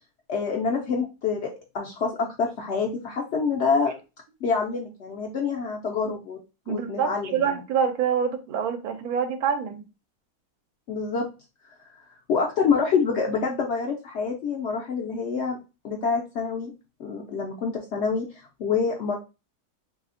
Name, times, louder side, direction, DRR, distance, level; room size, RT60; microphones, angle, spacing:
voice 1, 0.3-3.9 4.4-6.4 6.7-7.6 10.9-11.3 11.8-15.6 15.8-16.7 17.0-19.1, left 5 dB, 65° left, 0.7 m, -27 dB
voice 2, 6.7-9.8, right 7 dB, 75° right, 1.1 m, -26 dB
3.3 x 2.7 x 2.4 m
omnidirectional pair, 1.6 m